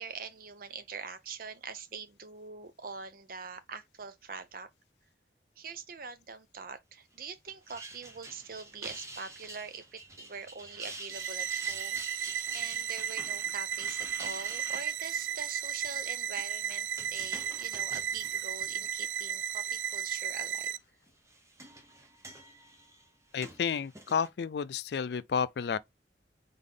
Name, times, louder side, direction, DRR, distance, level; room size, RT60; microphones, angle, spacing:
voice 1, 0.0-4.7 5.6-20.7, right 5 dB, 50° right, 0.6 m, -44 dB
sound 1, 7.5-19.2 19.7-20.2 21.1-24.3, right 2 dB, 15° right, 0.8 m, -48 dB
sound 2, 11.1-20.8, right 9 dB, 85° right, 0.3 m, -34 dB
voice 2, 23.3-25.8, left 6 dB, 65° left, 0.3 m, -31 dB
3.7 x 3.6 x 3.7 m
head